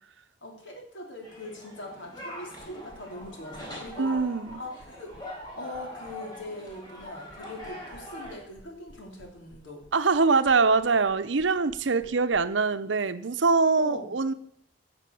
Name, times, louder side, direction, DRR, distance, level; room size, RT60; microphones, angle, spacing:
voice 1, 0.4-4.1 4.5-5.2 5.5-9.8 13.8-14.1, left 1 dB, 80° left, 3.4 m, -41 dB
sound 1, 1.2-8.4, left 1 dB, 20° left, 4.4 m, -43 dB
sound 2, 2.6-12.4, equal, 45° left, 3.5 m, -53 dB
voice 2, 4.0-4.6 9.9-14.3, right 4 dB, 80° right, 0.8 m, -23 dB
15.5 x 6.9 x 7.1 m
head